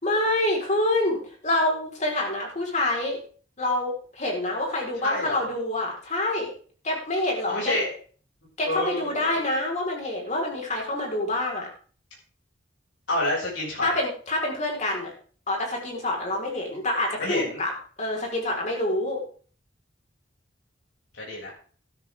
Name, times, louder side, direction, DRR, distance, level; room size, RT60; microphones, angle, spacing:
voice 1, 0.0-3.2 3.6-6.5 6.8-7.8 8.6-11.7 13.8-15.1 15.5-17.7 18.0-19.2, left 1 dB, 40° left, 0 dB, 4.7 m, -27 dB
voice 2, 5.0-5.5 7.5-8.0 8.6-9.3 13.1-13.9 17.2-17.6 21.1-21.5, left 1 dB, 80° left, -4 dB, 7.2 m, -28 dB
13.0 x 12.5 x 3.7 m, 0.43 s
head